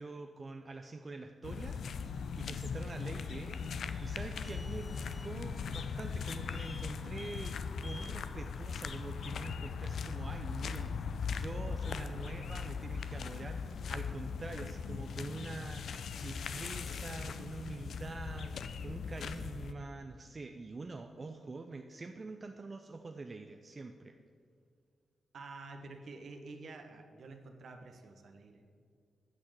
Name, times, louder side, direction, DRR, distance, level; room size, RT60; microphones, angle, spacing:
voice 1, 0.0-7.5 7.8-24.2, right 3 dB, 45° right, 5 dB, 0.6 m, -45 dB
sound 1, 1.4-19.7, left 6 dB, 70° left, 0.5 m, -39 dB
sound 2, 3.0-10.3, left 2 dB, 15° left, 0.6 m, -55 dB
voice 2, 25.3-28.6, right 3 dB, 65° right, 5 dB, 1.3 m, -49 dB
9.6 x 6.4 x 7.9 m, 2.1 s
supercardioid pair, 40°, 0 cm